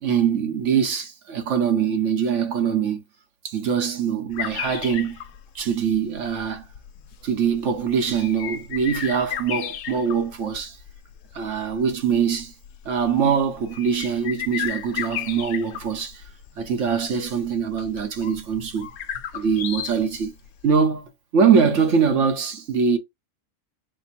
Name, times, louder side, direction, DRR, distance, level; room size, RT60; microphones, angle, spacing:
voice 1, 0.0-3.0 3.4-5.2 5.5-6.6 7.2-10.8 11.3-12.5 12.8-16.2 16.6-18.9 19.3-20.3 20.6-23.0, right 6 dB, 60° right, 1.3 m, -23 dB
sound 1, 4.3-20.7, left 10 dB, 80° left, 1.1 m, -35 dB
4.3 x 2.1 x 4.3 m
omnidirectional pair, 1.5 m